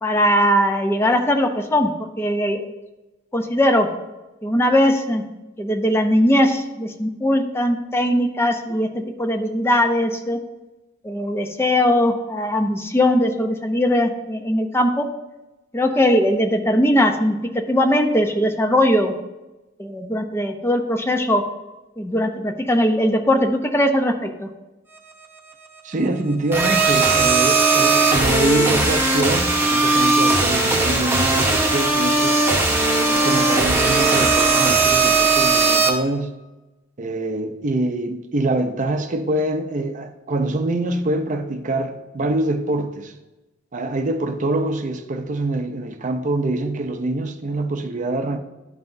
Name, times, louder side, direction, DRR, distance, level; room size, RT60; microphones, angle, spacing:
voice 1, 0.0-2.7 3.3-3.9 4.4-5.2 5.6-8.9 9.2-10.4 11.0-15.0 15.7-17.4 17.7-19.1 19.8-21.4 22.0-24.5, left 1 dB, 15° left, 0.6 m, -19 dB
voice 2, 25.8-32.4 33.1-36.3 37.0-43.1 43.7-48.4, right 2 dB, 40° right, 0.6 m, -25 dB
sound 1, 26.5-35.9, right 3 dB, 10° right, 1.0 m, -18 dB
11.5 x 5.7 x 2.6 m
head